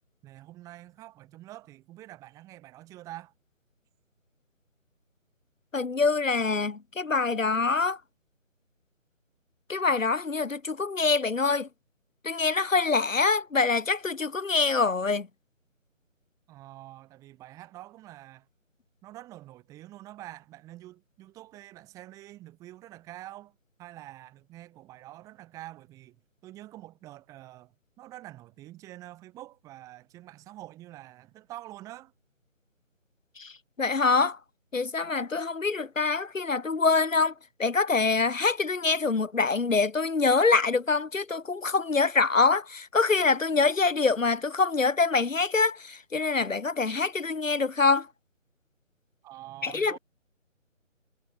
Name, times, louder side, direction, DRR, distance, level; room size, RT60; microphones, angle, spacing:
voice 1, 0.2-3.3 16.5-18.5 19.0-26.2 26.4-32.1 49.2-50.0, right 15 dB, 10° right, 2.6 m, -46 dB
voice 2, 5.7-8.0 9.7-11.7 12.2-15.3 33.4-33.5 33.8-34.4 34.7-37.3 37.6-48.1 49.6-50.0, left 4 dB, 75° left, 1.5 m, -25 dB
figure-of-eight pair, 150°, 39 cm